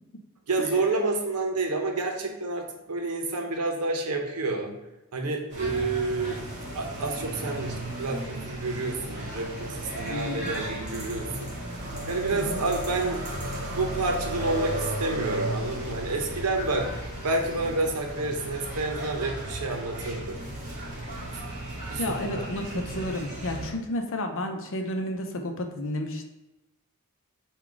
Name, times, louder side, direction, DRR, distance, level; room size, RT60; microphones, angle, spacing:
voice 1, 0.5-4.7 5.1-6.4 6.7-11.5 12.1-13.2 13.6-16.9 17.2-20.4 21.8-22.4 22.7-23.0, right 3 dB, 85° right, 3 dB, 0.7 m, -29 dB
sound 1, 5.5-23.7, right 1 dB, 35° right, 1.3 m, -35 dB
voice 2, 10.1-10.5 12.3-12.6 22.0-26.3, left 1 dB, 60° left, 4 dB, 0.6 m, -31 dB
3.9 x 2.3 x 4.6 m, 1.0 s
head